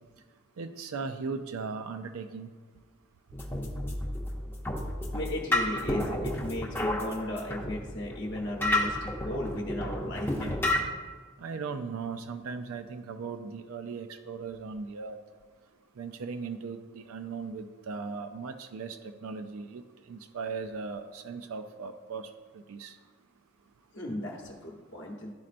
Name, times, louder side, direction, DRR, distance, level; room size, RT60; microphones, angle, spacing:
voice 1, 0.6-2.5 11.4-15.2 16.0-23.0, right 4 dB, 80° right, 7 dB, 0.4 m, -38 dB
sound 1, 3.3-10.8, left 1 dB, 10° left, 0.6 m, -31 dB
voice 2, 5.1-10.8 23.9-25.3, left 1 dB, 55° left, -2 dB, 0.9 m, -36 dB
12.0 x 4.2 x 2.5 m, 1.5 s
head